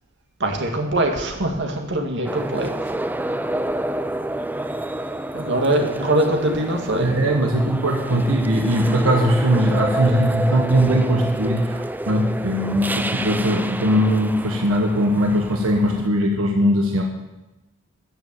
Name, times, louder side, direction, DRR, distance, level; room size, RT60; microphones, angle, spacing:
voice 1, 0.4-2.7 5.3-7.2, right 1 dB, 60° right, 3 dB, 2.2 m, -22 dB
sound 1, 2.2-16.1, right 1 dB, 10° right, 0.5 m, -29 dB
voice 2, 7.0-17.0, equal, 85° right, 2 dB, 1.7 m, -20 dB
13.5 x 7.0 x 8.9 m, 1.0 s
head